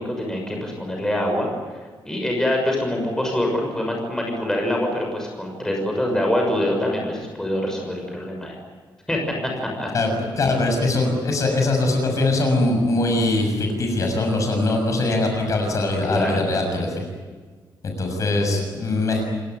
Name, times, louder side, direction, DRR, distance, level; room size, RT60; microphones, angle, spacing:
voice 1, 0.0-1.5 2.0-8.6 9.1-9.2 9.6-9.9 16.1-16.4, left 1 dB, 5° left, 1 dB, 6.3 m, -24 dB
voice 2, 9.9-17.1 17.8-19.3, left 2 dB, 45° left, 3 dB, 6.5 m, -22 dB
29.0 x 18.0 x 9.6 m, 1.5 s
wide cardioid pair, 170°, 8 cm